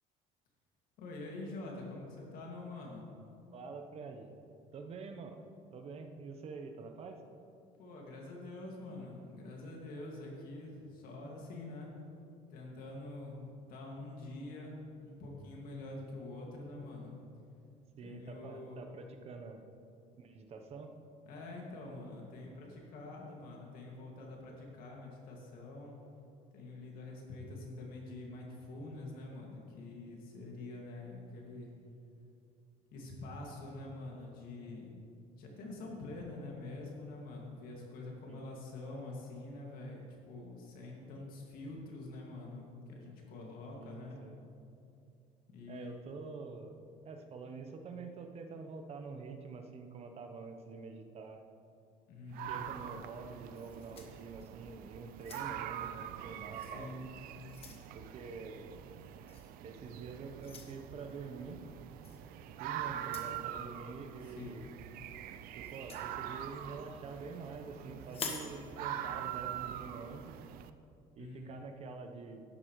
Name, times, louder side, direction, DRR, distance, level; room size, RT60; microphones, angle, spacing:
voice 1, 1.0-3.1 7.8-11.9 12.5-17.2 18.0-18.8 21.3-26.0 26.5-31.7 32.9-44.2 45.5-45.9 52.1-52.6 56.6-57.0 64.3-64.6 71.2-71.5, left 2 dB, 70° left, -1 dB, 2.2 m, -46 dB
voice 2, 3.5-4.3 4.7-5.4 5.7-7.2 18.0-19.6 20.2-20.9 38.3-38.4 43.8-44.4 45.7-46.7 47.0-51.4 52.5-56.9 57.9-58.7 59.6-61.6 62.5-64.7 65.5-70.4 71.1-72.4, right 4 dB, 40° right, 5 dB, 0.9 m, -47 dB
sound 1, 52.3-70.7, right 10 dB, 70° right, 0.5 m, -44 dB
sound 2, 53.5-54.7 55.1-55.8 56.6-56.8 57.2-57.9 59.3-59.5 60.4-60.7 62.0-62.2 63.0-63.4 65.6-66.1 68.1-68.5, left 5 dB, 40° left, 1.2 m, -46 dB
12.0 x 10.0 x 3.2 m, 2.6 s
cardioid pair, 135°, 15 cm